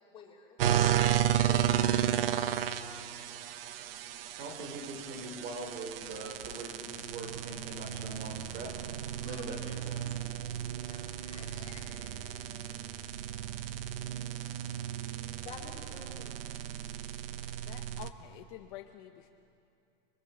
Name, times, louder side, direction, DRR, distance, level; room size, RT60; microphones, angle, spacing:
voice 1, 0.1-0.6 1.4-1.9 9.2-9.5 10.9-11.8 15.4-16.4, left 6 dB, 20° left, -2 dB, 3.1 m, -50 dB
sound 1, 0.6-18.1, right 10 dB, 70° right, 1.1 m, -33 dB
voice 2, 4.4-8.7 9.2-10.0, right 2 dB, 30° right, 4 dB, 4.0 m, -42 dB
voice 3, 17.7-19.3, left 13 dB, 40° left, 5 dB, 0.9 m, -48 dB
30.0 x 23.0 x 7.1 m, 2.6 s
supercardioid pair, 175°, 30 cm